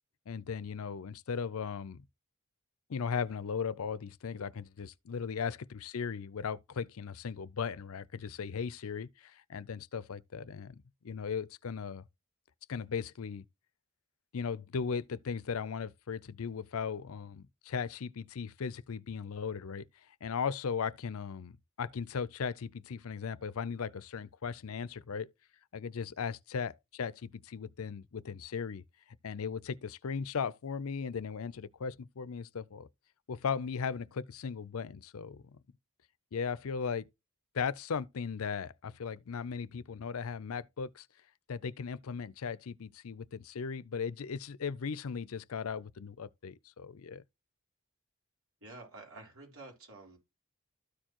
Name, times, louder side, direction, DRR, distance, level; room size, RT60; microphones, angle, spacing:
voice 1, 0.3-2.0 2.9-12.1 12.7-13.4 14.3-19.9 20.2-25.3 25.7-28.8 29.2-32.9 33.3-35.6 36.3-37.1 37.5-41.1 41.5-47.2, left 6 dB, 75° left, 0.5 m, -37 dB
voice 2, 48.6-50.2, right 2 dB, 70° right, 3.8 m, -50 dB
13.0 x 4.5 x 2.9 m
head